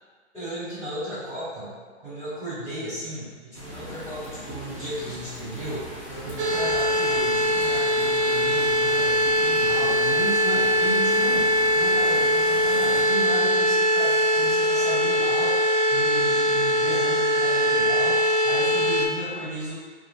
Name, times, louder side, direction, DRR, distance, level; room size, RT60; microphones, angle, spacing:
voice 1, 0.3-1.7 2.0-19.7, right 1 dB, ahead, -24 dB, 0.4 m, -34 dB
sound 1, 3.5-13.1, equal, 30° left, 0.8 m, -40 dB
sound 2, 6.4-19.1, equal, 70° right, 0.6 m, -22 dB
3.2 x 2.4 x 2.8 m, 1.5 s
hypercardioid pair, 175°, 36 cm